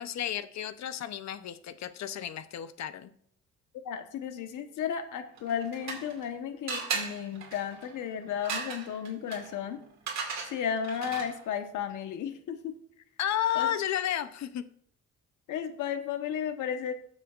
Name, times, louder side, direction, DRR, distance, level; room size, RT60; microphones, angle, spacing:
voice 1, 0.0-3.1 13.2-14.7, left 11 dB, 65° left, 12 dB, 0.8 m, -32 dB
voice 2, 3.8-9.8 10.4-12.7 13.5-13.7 15.5-16.9, left 8 dB, 80° left, 7 dB, 1.2 m, -34 dB
sound 1, 5.4-6.3 6.7-11.5, right 5 dB, 65° right, 2.4 m, -37 dB
15.5 x 7.5 x 2.5 m, 0.64 s
cardioid pair, 90°, 30 cm